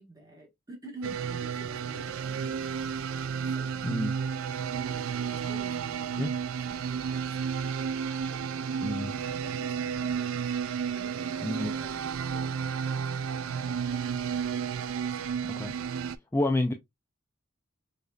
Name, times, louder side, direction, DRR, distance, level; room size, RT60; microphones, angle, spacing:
voice 1, 0.0-3.9 4.9-6.3 6.6-7.6 8.2-10.5 10.9-14.0 15.1-15.4, right 1 dB, 15° right, 1.5 m, -50 dB
sound 1, 1.0-16.2, right 7 dB, 85° right, 0.3 m, -32 dB
voice 2, 8.8-9.2 11.4-11.7 15.4-15.7 16.3-16.7, left 1 dB, 10° left, 0.3 m, -29 dB
4.9 x 2.6 x 2.3 m
head